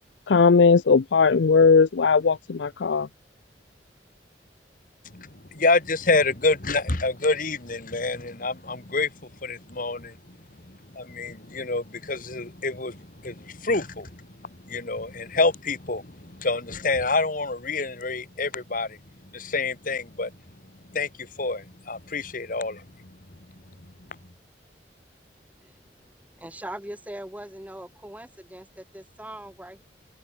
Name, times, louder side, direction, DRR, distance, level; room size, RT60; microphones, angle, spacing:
voice 1, 0.3-3.1, left 5 dB, 75° left, 0.5 m, -18 dB
voice 2, 5.1-9.1 9.4-10.4 10.7-19.0 19.3-20.3 20.9-23.2 24.1-24.2, left 3 dB, 50° left, 2.4 m, -27 dB
voice 3, 26.4-29.8, right 1 dB, 10° right, 2.4 m, -40 dB
head